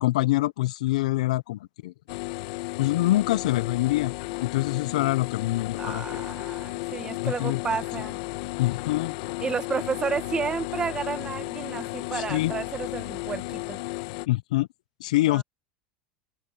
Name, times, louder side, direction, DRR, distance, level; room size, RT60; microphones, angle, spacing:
voice 1, 0.0-1.9 2.8-4.1 4.4-6.2 7.2-7.6 8.6-9.1 12.1-12.5 14.3-14.7 15.0-15.4, left 17 dB, 85° left, 0.5 m, -25 dB
sound 1, 2.1-14.3, left 22 dB, 70° left, 1.2 m, -34 dB
voice 2, 5.8-8.2 9.4-13.8 15.2-15.4, right 6 dB, 20° right, 1.6 m, -31 dB
open air
supercardioid pair, 130°, 4 cm